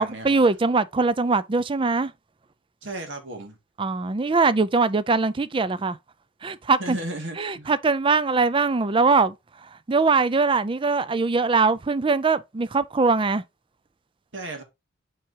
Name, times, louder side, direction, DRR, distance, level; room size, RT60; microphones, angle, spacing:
voice 1, 0.0-2.1 3.8-6.0 6.4-7.0 7.4-9.4 9.9-13.4, right 4 dB, 25° right, 0.4 m, -22 dB
voice 2, 2.8-3.6 6.8-7.7 14.3-14.6, right 1 dB, 70° right, 2.1 m, -34 dB
7.4 x 4.8 x 2.8 m
head